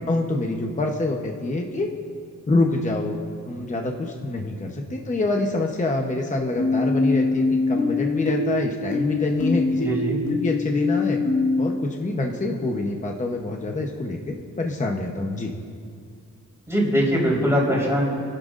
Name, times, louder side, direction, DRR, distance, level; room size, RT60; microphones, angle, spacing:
voice 1, 0.1-1.9 2.5-3.2 3.5-10.0 10.3-11.2 11.6-15.5, left 2 dB, 25° left, 1 dB, 0.9 m, -26 dB
sound 1, 6.6-11.7, left 3 dB, 60° left, 2.7 m, -23 dB
voice 2, 9.8-10.2 16.7-18.1, equal, 10° right, -5 dB, 3.9 m, -21 dB
29.0 x 11.5 x 2.5 m, 2.3 s
wide cardioid pair, 160°, 32 cm